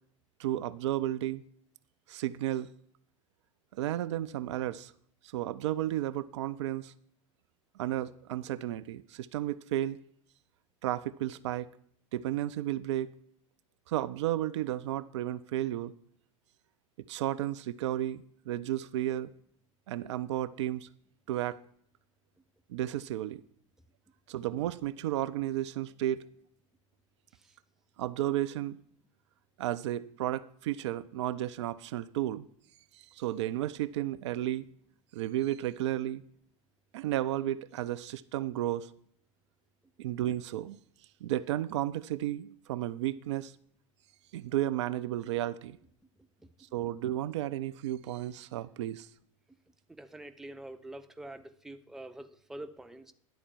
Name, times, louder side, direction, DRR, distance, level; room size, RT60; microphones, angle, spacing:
voice 1, 0.4-1.4 2.1-2.7 3.7-4.9 5.3-6.9 7.8-10.0 10.8-11.7 12.1-13.1 13.9-15.9 17.1-19.3 19.9-20.9 21.3-21.6 22.7-23.4 24.3-26.2 28.0-28.8 29.6-32.5 32.9-34.7 35.1-36.2 36.9-38.9 40.0-40.8 41.2-43.5 44.3-45.8 46.7-49.1, right 13 dB, 60° right, 0.4 m, -33 dB
voice 2, 49.9-53.1, right 1 dB, ahead, 0.5 m, -45 dB
10.0 x 4.3 x 7.2 m
figure-of-eight pair, 80°, 17 cm